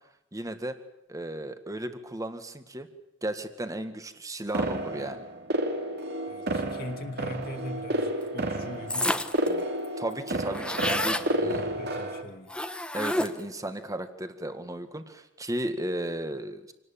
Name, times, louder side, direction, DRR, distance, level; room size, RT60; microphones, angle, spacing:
voice 1, 0.3-0.8 1.1-2.9 3.2-5.2 10.0-11.6 12.9-16.7, right 1 dB, 20° right, 8 dB, 1.8 m, -34 dB
sound 1, 4.5-12.2, right 1 dB, 60° right, 2.6 m, -31 dB
voice 2, 6.3-9.1 9.4-9.7 11.4-12.5, left 1 dB, 50° left, 3 dB, 2.4 m, -40 dB
sound 2, 8.9-9.5 9.8-9.9 10.1-11.3 12.5-13.5, left 1 dB, 5° left, 1.2 m, -29 dB
26.5 x 19.0 x 8.8 m, 0.85 s
head